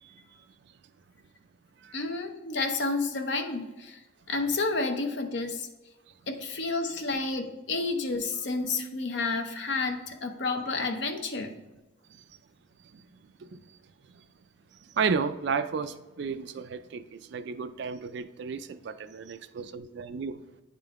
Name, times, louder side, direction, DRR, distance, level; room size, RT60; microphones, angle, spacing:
voice 1, 1.9-4.0 4.3-5.7 6.3-11.5, left 3 dB, 55° left, 0.7 m, -30 dB
voice 2, 14.9-20.4, right 5 dB, 55° right, 0.3 m, -33 dB
8.9 x 3.7 x 3.5 m
head